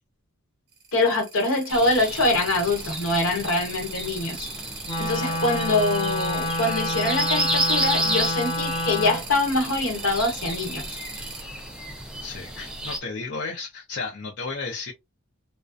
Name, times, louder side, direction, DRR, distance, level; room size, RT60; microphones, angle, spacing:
sound 1, 0.7-11.4, right 5 dB, 50° right, 0.8 m, -39 dB
voice 1, 0.9-4.4 5.0-11.0, left 2 dB, 70° left, 1.0 m, -24 dB
sound 2, 1.7-13.0, right 1 dB, 5° right, 0.4 m, -31 dB
Wind instrument woodwind instrument, 4.8-9.2, left 1 dB, 20° left, 0.8 m, -28 dB
voice 2, 12.2-14.9, left 4 dB, 55° left, 0.5 m, -33 dB
2.3 x 2.1 x 2.5 m
head